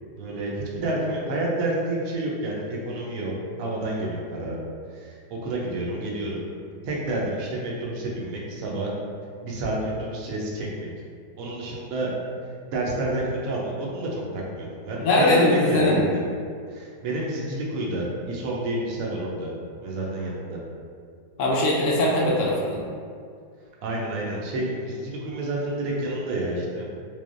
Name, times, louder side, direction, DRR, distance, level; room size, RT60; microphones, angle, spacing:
voice 1, 0.1-4.6 4.9-6.4 6.8-8.9 9.4-10.9 11.4-12.2 12.7-16.2 16.7-19.5 19.8-20.6 23.8-26.9, right 1 dB, 65° right, -3 dB, 0.9 m, -29 dB
voice 2, 15.0-16.0 21.4-22.8, left 1 dB, 80° left, -3 dB, 0.6 m, -21 dB
3.7 x 3.2 x 2.5 m, 2.2 s
omnidirectional pair, 1.9 m